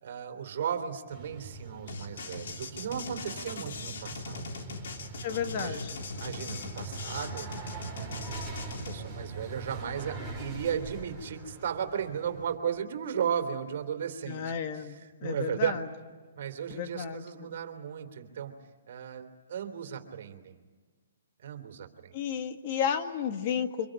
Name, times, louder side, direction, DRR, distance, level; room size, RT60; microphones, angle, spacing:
voice 1, 0.0-4.5 5.3-5.8 6.2-7.5 7.9-8.4 8.9-15.7 16.4-18.5 18.9-20.6 21.4-22.2, right 8 dB, 55° right, 6 dB, 3.4 m, -35 dB
sound 1, 1.1-12.6, right 3 dB, ahead, 6.2 m, -42 dB
sound 2, 1.9-9.0, left 4 dB, 65° left, 3.2 m, -40 dB
voice 2, 5.2-6.0 14.3-15.9 16.7-17.6 22.1-23.9, left 7 dB, 40° left, 7 dB, 1.9 m, -33 dB
25.5 x 23.5 x 9.1 m, 1.4 s
hypercardioid pair, 150°, 0 cm